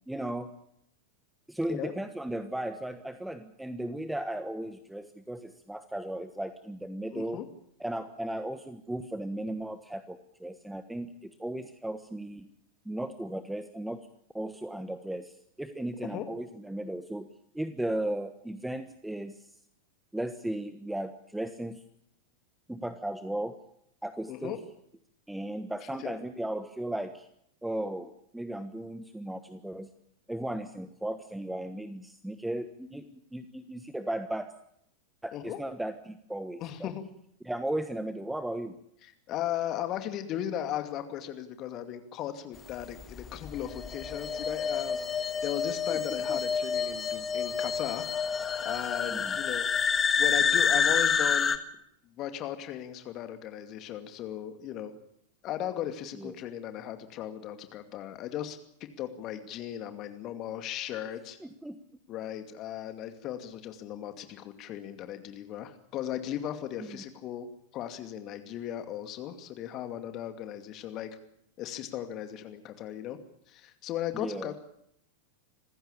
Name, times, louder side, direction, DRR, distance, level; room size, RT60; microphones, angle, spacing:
voice 1, 0.1-0.5 1.5-7.4 7.8-12.5 12.8-14.0 14.3-17.3 17.5-19.5 20.1-21.8 22.7-23.5 24.0-24.6 25.3-27.3 27.6-29.9 30.3-34.5 35.2-36.9 37.4-38.7 45.9-46.0 46.3-46.4 49.1-49.4 56.1-56.3 61.4-61.8 66.8-67.0 74.1-74.5, right 1 dB, 5° right, 10 dB, 1.3 m, -36 dB
voice 2, 7.1-7.5 16.0-16.2 24.3-24.6 26.0-26.2 35.3-35.6 36.6-37.0 39.0-45.1 45.4-48.0 48.6-51.6 52.2-54.9 55.4-58.6 59.0-61.4 62.1-67.5 67.7-71.1 71.6-73.2 73.5-74.6, left 11 dB, 35° left, 8 dB, 2.5 m, -37 dB
sound 1, 43.0-51.6, left 6 dB, 20° left, 1.7 m, -28 dB
27.0 x 15.5 x 8.6 m, 0.74 s
figure-of-eight pair, 90°, 0 cm